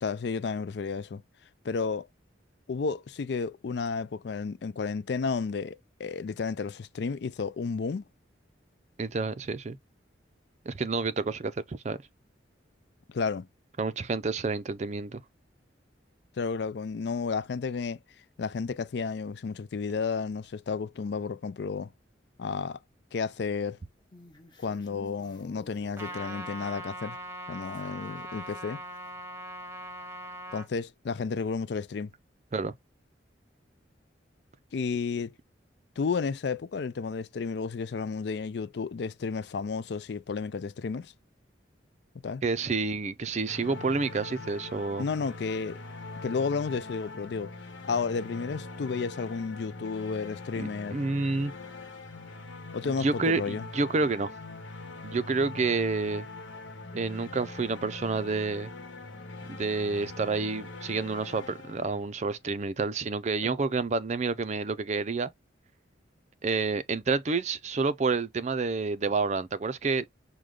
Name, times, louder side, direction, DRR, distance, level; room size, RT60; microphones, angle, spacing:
voice 1, 0.0-1.2 1.6-2.1 2.7-8.0 13.1-13.5 16.4-18.0 18.4-21.9 22.4-22.8 23.1-23.8 24.6-27.2 27.5-28.8 30.5-32.1 34.7-35.3 36.0-41.1 42.2-42.4 45.0-45.8 46.2-47.5 47.9-51.0 52.7-53.6 63.4-63.5, left 5 dB, 60° left, 0.4 m, -32 dB
voice 2, 9.0-9.8 10.7-12.0 13.8-15.2 32.5-32.7 42.4-45.1 50.6-51.5 52.8-54.3 55.0-56.3 56.9-58.7 59.5-65.3 66.4-70.1, right 4 dB, 35° right, 0.4 m, -29 dB
sound 1, 23.8-27.0 27.4-28.6 28.9-29.0, left 1 dB, 25° left, 1.0 m, -54 dB
Trumpet, 26.0-30.7, right 1 dB, 15° right, 0.9 m, -40 dB
sound 2, 43.5-62.4, left 3 dB, 85° left, 1.0 m, -42 dB
6.3 x 2.2 x 3.7 m
head